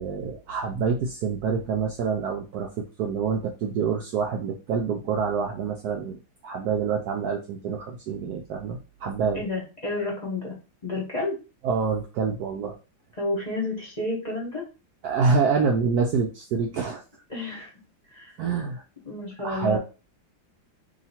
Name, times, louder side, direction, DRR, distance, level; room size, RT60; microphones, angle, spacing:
voice 1, 0.0-9.4 11.6-12.8 15.0-17.0 18.4-18.8 19.4-19.8, right 5 dB, 75° right, 2 dB, 0.9 m, -26 dB
voice 2, 9.3-10.5 10.8-11.3 13.2-14.6 17.3-17.7 18.1-18.3 19.0-19.8, left 2 dB, 25° left, -3 dB, 1.0 m, -30 dB
2.9 x 2.8 x 4.2 m, 0.31 s
omnidirectional pair, 2.1 m